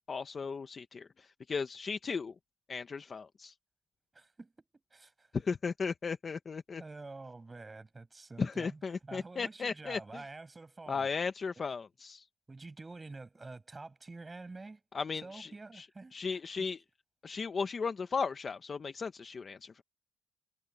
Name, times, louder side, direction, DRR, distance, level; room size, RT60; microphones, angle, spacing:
voice 1, 0.1-2.3 2.7-3.5 5.5-6.8 8.4-10.2 10.9-12.3 14.9-16.8 17.2-19.8, left 5 dB, 30° left, 0.7 m, -36 dB
voice 2, 4.1-4.5 4.9-5.3 6.8-11.1 12.5-14.8 15.2-16.4, right 3 dB, 15° right, 7.9 m, -48 dB
cardioid pair, 155°, 0 cm